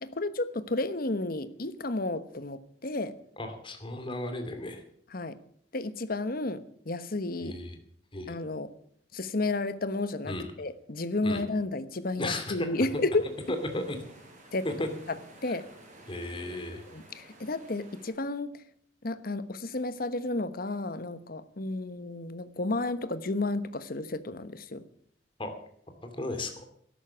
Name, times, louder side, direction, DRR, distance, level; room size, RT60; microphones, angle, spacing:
voice 1, 0.0-3.1 5.1-5.4 5.7-7.6 8.3-8.7 9.1-13.2 14.5-14.7 15.1-15.2 15.4-15.7 16.9-18.6 19.0-24.8, left 2 dB, 55° left, 13 dB, 1.1 m, -32 dB
voice 2, 3.4-4.8 7.4-7.8 8.1-8.3 10.3-10.5 11.2-11.4 12.2-12.8 13.5-14.0 14.6-14.9 15.4-15.6 16.1-16.8 25.4-25.5 26.1-26.6, left 1 dB, 30° left, 7 dB, 2.6 m, -34 dB
sound 1, 12.7-18.1, right 1 dB, 45° right, 5.5 m, -53 dB
12.5 x 11.5 x 7.2 m, 0.64 s
head